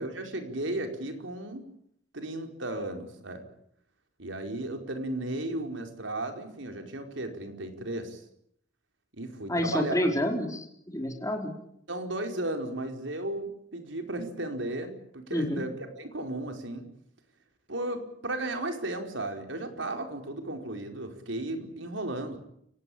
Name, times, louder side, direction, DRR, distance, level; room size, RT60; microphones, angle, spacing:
voice 1, 0.0-1.6 2.1-3.4 4.2-8.2 9.2-10.0 11.9-16.9 17.7-22.4, right 1 dB, 85° right, 5 dB, 4.9 m, -35 dB
voice 2, 9.5-11.5 15.3-15.6, left 1 dB, 20° left, 2 dB, 4.3 m, -29 dB
29.5 x 17.5 x 8.8 m, 0.72 s
head